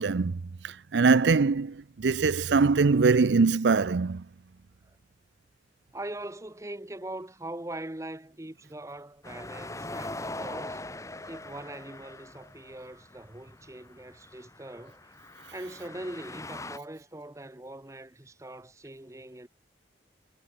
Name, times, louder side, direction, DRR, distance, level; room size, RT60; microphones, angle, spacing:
voice 1, 0.0-4.2, right 4 dB, 80° right, 0.5 m, -23 dB
voice 2, 5.9-10.8 11.3-15.1 15.5-19.5, right 1 dB, 15° right, 1.0 m, -41 dB
sound 1, 9.2-16.8, left 2 dB, 15° left, 2.1 m, -42 dB
head